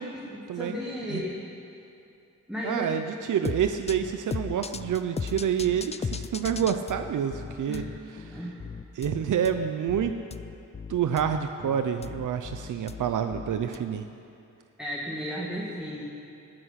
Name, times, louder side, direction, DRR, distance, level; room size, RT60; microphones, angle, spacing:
voice 1, 0.0-1.4 2.5-2.9 7.7-7.9 8.3-8.6 14.8-16.0, equal, ahead, -6 dB, 2.0 m, -34 dB
voice 2, 2.6-3.0 3.3-7.8 8.1-8.4 8.9-10.1 10.9-14.0, right 8 dB, 85° right, 7 dB, 0.7 m, -28 dB
sound 1, 3.4-13.8, left 5 dB, 20° left, 0.4 m, -37 dB
19.5 x 12.5 x 5.8 m, 2.7 s
wide cardioid pair, 145°, 30 cm